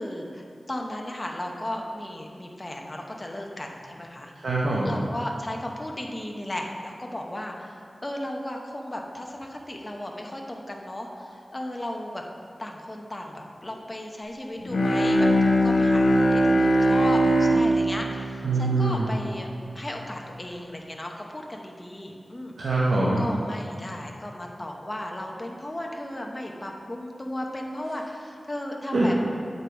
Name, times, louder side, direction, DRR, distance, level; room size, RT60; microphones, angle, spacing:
voice 1, 0.0-4.3 4.8-7.7 8.0-12.2 12.6-19.5 19.7-22.6 23.2-29.2, left 1 dB, 30° left, 1 dB, 1.0 m, -35 dB
voice 2, 4.4-4.9 18.4-19.1 22.6-23.2 28.9-29.2, right 2 dB, 85° right, -6 dB, 1.0 m, -23 dB
Bowed string instrument, 14.6-19.5, equal, 80° left, 0.7 m, -21 dB
8.2 x 5.4 x 4.6 m, 2.4 s
wide cardioid pair, 60°, 0 cm